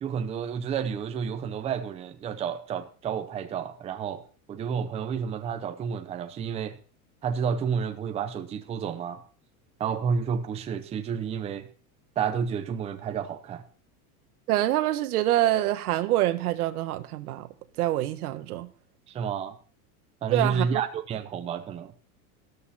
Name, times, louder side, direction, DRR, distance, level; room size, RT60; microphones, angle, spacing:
voice 1, 0.0-4.2 4.5-6.8 7.2-9.2 9.8-11.7 12.2-13.6 19.1-19.6 20.2-21.9, right 6 dB, 15° right, 0.7 m, -30 dB
voice 2, 14.5-17.5 17.8-18.7 20.3-20.8, right 14 dB, 85° right, 1.5 m, -25 dB
13.5 x 13.0 x 4.2 m
supercardioid pair, 170°, 43 cm